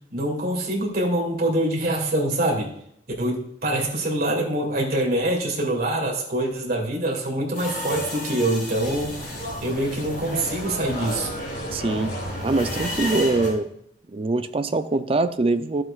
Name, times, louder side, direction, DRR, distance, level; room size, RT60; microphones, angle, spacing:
voice 1, 0.1-2.7 3.2-9.2 9.6-11.3, right 1 dB, 55° right, -1 dB, 2.3 m, -25 dB
sound 1, 7.5-13.5, equal, 45° left, 3.9 m, -32 dB
sound 2, 8.8-13.2, equal, 70° left, 2.0 m, -39 dB
voice 2, 11.7-12.1 12.4-13.7 14.1-15.8, right 2 dB, 30° right, 10 dB, 0.4 m, -23 dB
12.5 x 7.6 x 2.4 m, 0.72 s
head